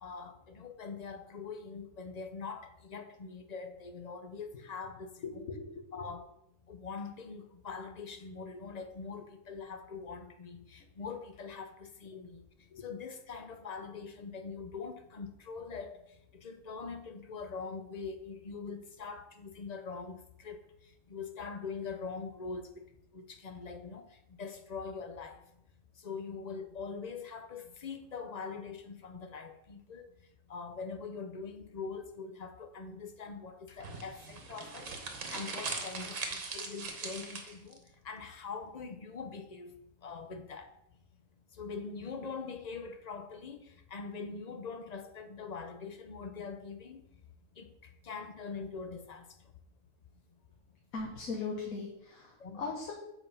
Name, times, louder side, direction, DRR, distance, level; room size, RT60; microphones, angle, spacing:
voice 1, 0.0-5.4 5.9-6.3 6.7-12.4 12.8-16.0 16.3-20.6 21.1-22.9 23.1-24.1 24.4-25.4 26.0-30.1 30.5-34.9 35.3-39.7 40.0-40.7 41.6-43.6 43.9-47.0 47.6-47.7 48.0-49.3 52.4-52.6, left 5 dB, 45° left, 0.6 m, -43 dB
voice 2, 5.2-6.1 12.1-12.2 12.7-12.8 50.9-52.9, left 4 dB, 80° left, 1.6 m, -39 dB
sound 1, 33.8-37.8, right 4 dB, 65° right, 1.5 m, -40 dB
7.6 x 4.7 x 5.5 m
omnidirectional pair, 1.5 m